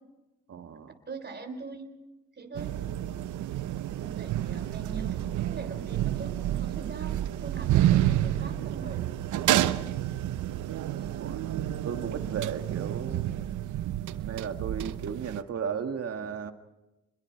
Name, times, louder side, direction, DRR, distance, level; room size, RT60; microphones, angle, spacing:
voice 1, 0.5-0.9 3.9-4.4 11.2-11.5 11.8-13.3 14.3-16.5, right 7 dB, 55° right, 7 dB, 1.9 m, -35 dB
voice 2, 1.1-1.9 2.4-2.7 4.0-9.0 10.9-11.9, right 4 dB, 35° right, 7 dB, 3.7 m, -42 dB
sound 1, 2.5-15.4, right 12 dB, 75° right, 0.9 m, -29 dB
30.0 x 22.0 x 4.6 m, 1.0 s
cardioid pair, 90°, 30 cm